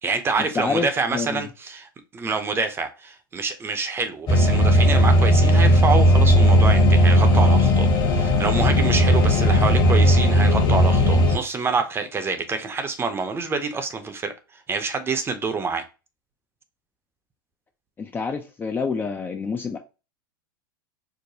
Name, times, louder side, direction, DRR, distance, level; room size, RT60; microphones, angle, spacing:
voice 1, 0.0-15.8, right 4 dB, 20° right, 0.6 m, -27 dB
voice 2, 0.6-1.5 18.0-19.8, left 5 dB, 15° left, 0.4 m, -27 dB
sound 1, 4.3-11.4, equal, 35° left, 1.0 m, -16 dB
4.8 x 2.1 x 2.7 m
hypercardioid pair, 105°, 12 cm